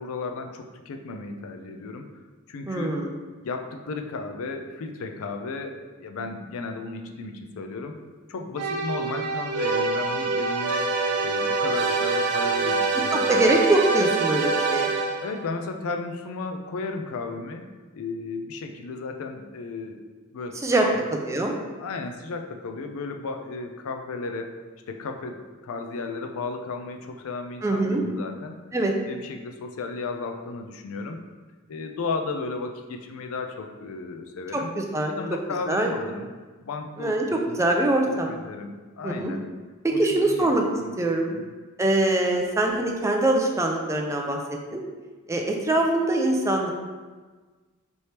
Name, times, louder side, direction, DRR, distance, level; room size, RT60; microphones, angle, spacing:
voice 1, 0.0-2.1 2.5-2.9 3.4-8.0 8.3-10.9 11.2-13.4 15.2-17.6 17.9-20.0 20.3-21.1 21.8-24.5 24.9-28.5 29.1-31.2 31.7-34.7 35.1-36.3 36.6-37.6 38.1-39.4 39.9-40.5 40.8-40.9 41.3-41.4, left 3 dB, 65° left, 5 dB, 0.4 m, -34 dB
voice 2, 2.7-3.1 13.1-14.9 20.6-20.8 21.2-21.5 27.6-28.0 28.7-28.9 34.5-35.1 35.7-35.9 37.0-38.3 39.0-39.3 40.0-40.6 41.0-41.4 41.8-44.4 44.7-44.8 45.3-46.7, right 1 dB, 15° right, 1 dB, 0.4 m, -23 dB
sound 1, 8.6-15.4, right 3 dB, 85° right, 0.5 m, -25 dB
4.5 x 3.3 x 2.8 m, 1.3 s
head